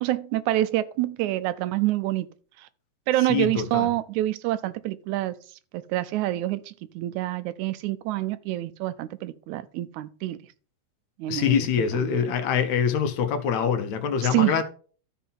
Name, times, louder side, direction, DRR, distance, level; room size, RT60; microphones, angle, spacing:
voice 1, 0.0-2.3 2.6-2.7 3.1-5.4 5.7-10.4 11.2-11.7 11.9-12.2 14.2-14.6, right 15 dB, 85° right, 2.0 m, -27 dB
voice 2, 3.3-3.9 11.3-14.6, left 7 dB, 75° left, 2.3 m, -24 dB
13.0 x 4.4 x 5.5 m
omnidirectional pair, 3.4 m